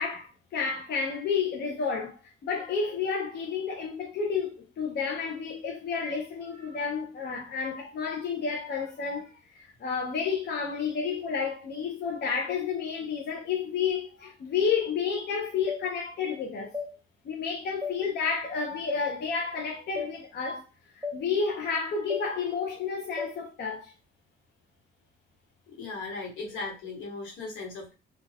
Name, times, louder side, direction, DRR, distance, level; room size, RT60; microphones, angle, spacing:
voice 1, 0.0-16.7 17.2-20.6 20.9-23.9, left 5 dB, 55° left, 0.6 m, -31 dB
sound 1, 15.7-15.8 16.7-16.9 17.8-18.0 18.9-19.0 20.0-20.1 21.0-21.2 22.1-22.3 23.2-23.3, left 4 dB, 10° right, 0.6 m, -33 dB
voice 2, 25.7-27.9, left 3 dB, 85° left, 1.2 m, -37 dB
2.3 x 2.3 x 3.2 m
cardioid pair, 90°, 20 cm